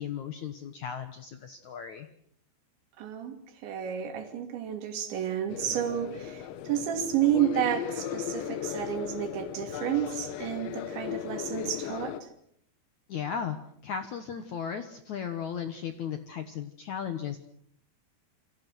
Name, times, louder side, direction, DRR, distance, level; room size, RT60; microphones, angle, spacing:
voice 1, 0.0-2.1 13.1-13.6 13.8-17.4, left 8 dB, 70° left, 9 dB, 1.8 m, -36 dB
voice 2, 3.0-3.4 3.6-12.3, right 10 dB, 85° right, 6 dB, 5.1 m, -31 dB
sound 1, 5.5-12.2, left 10 dB, 85° left, 3.5 m, -37 dB
28.0 x 24.5 x 6.2 m, 0.68 s
omnidirectional pair, 5.1 m